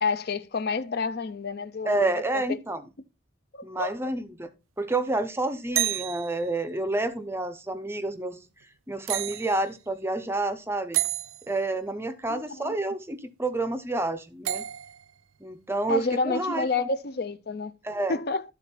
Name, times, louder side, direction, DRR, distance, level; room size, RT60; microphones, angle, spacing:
voice 1, 0.0-2.1 2.5-2.6 3.5-3.9 12.3-12.7 15.9-17.7 18.1-18.4, left 4 dB, 50° left, 0.5 m, -29 dB
voice 2, 1.8-2.8 3.6-4.5 4.8-8.4 8.9-11.0 11.5-14.7 15.4-16.9 17.8-18.2, right 2 dB, 10° right, 0.6 m, -29 dB
sound 1, 5.7-6.5 9.1-9.7 10.9-11.5 14.4-15.1, right 13 dB, 85° right, 0.5 m, -29 dB
11.5 x 3.9 x 4.4 m
head